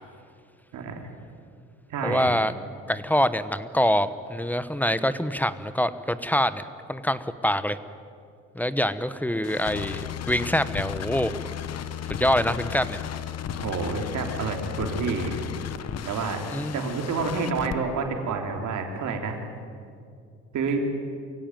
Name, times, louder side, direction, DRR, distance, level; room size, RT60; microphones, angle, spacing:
voice 1, 0.7-1.1 1.9-2.3 13.6-15.4 16.0-16.4 16.7-19.4 20.5-20.8, right 5 dB, 75° right, 3 dB, 3.4 m, -29 dB
voice 2, 2.0-2.5 2.9-7.8 8.5-11.3 12.1-13.0 16.5-17.0, equal, 5° left, 13 dB, 1.0 m, -25 dB
sound 1, 9.4-17.8, left 9 dB, 55° left, 1.1 m, -34 dB
23.5 x 16.5 x 9.2 m, 2.4 s
cardioid pair, 90°, 30 cm